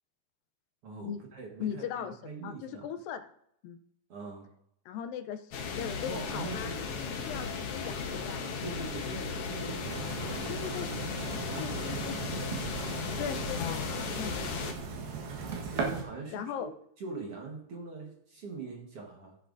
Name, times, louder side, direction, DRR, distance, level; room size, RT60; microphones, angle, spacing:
voice 1, 0.8-2.9 4.1-4.5 6.1-6.8 8.6-10.7 11.1-12.2 15.3-16.7 17.0-19.4, right 4 dB, 55° right, 0 dB, 1.9 m, -43 dB
voice 2, 1.6-2.1 2.4-3.2 3.6-3.8 4.9-8.4 10.5-10.9 11.6-12.2 13.2-14.5 16.3-16.7, left 9 dB, 85° left, 9 dB, 2.4 m, -39 dB
sound 1, 5.5-14.7, left 5 dB, 65° left, 1.6 m, -36 dB
sound 2, 9.8-16.0, right 5 dB, 90° right, 3.3 m, -38 dB
15.5 x 8.7 x 2.6 m, 0.75 s
omnidirectional pair, 4.0 m